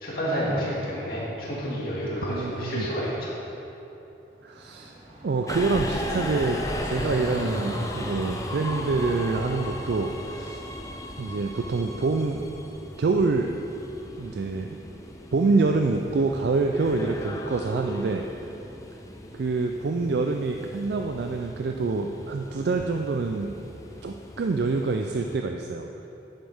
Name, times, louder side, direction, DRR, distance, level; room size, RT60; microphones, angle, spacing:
voice 1, 0.0-3.4, equal, 55° left, -6 dB, 2.2 m, -29 dB
voice 2, 2.3-2.9 4.4-4.9 5.2-10.6 11.2-12.4 13.0-13.5 14.2-14.8 15.3-18.2 19.3-23.5 24.0-25.9, right 3 dB, 65° right, 4 dB, 0.4 m, -26 dB
sound 1, 4.3-10.3, equal, 30° right, 1.6 m, -38 dB
Subway metro underground, 5.5-25.4, left 1 dB, 20° left, 0.5 m, -37 dB
10.5 x 7.8 x 3.6 m, 3.0 s
head